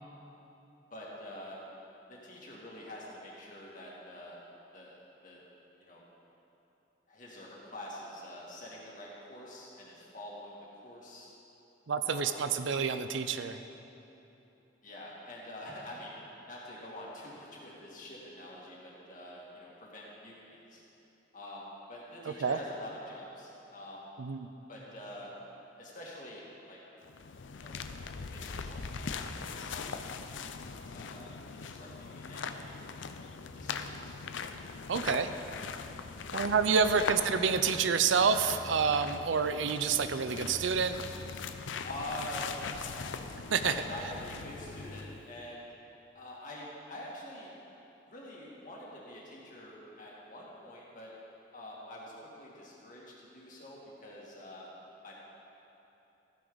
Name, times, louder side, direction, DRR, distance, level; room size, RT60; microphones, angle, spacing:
voice 1, 0.9-1.6 2.1-4.4 4.7-5.0 5.2-5.4 5.8-6.0 7.1-10.6 10.8-11.3 12.0-12.4 14.8-16.1 16.5-20.8 21.3-24.1 24.7-25.3 25.8-26.4 26.7-26.8 27.5-27.8 28.3-29.9 30.9-32.7 33.5-34.2 36.9-37.1 41.8-43.1 43.6-45.7 46.1-47.5 48.1-51.1 51.5-54.7 55.0-55.2, left 1 dB, 45° left, -5 dB, 2.3 m, -46 dB
voice 2, 11.9-13.6 22.4-22.6 24.2-24.5 34.9-35.3 36.3-41.0 43.5-43.7, right 6 dB, 85° right, 10 dB, 0.5 m, -28 dB
sound 1, 27.0-45.3, left 5 dB, 80° left, 0.5 m, -41 dB
14.5 x 9.6 x 4.0 m, 3.0 s
head